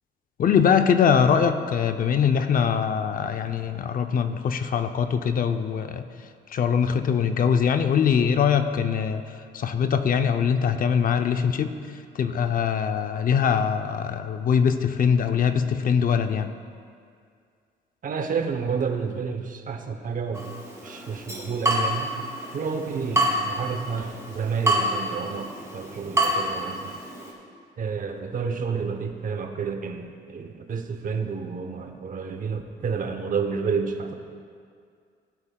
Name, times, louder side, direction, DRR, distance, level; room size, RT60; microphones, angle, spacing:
voice 1, 0.4-6.0 6.5-9.2 9.5-11.8 12.1-16.5, left 7 dB, 50° left, 8 dB, 0.5 m, -22 dB
voice 2, 18.0-20.5 20.8-22.2 22.5-25.5 25.7-27.0 27.8-34.1, right 5 dB, 45° right, 6 dB, 0.8 m, -30 dB
Water tap faucet / Drip, 20.3-27.3, right 1 dB, 15° right, 2.0 m, -28 dB
16.5 x 8.7 x 2.3 m, 2.2 s
cardioid pair, 110°, 19 cm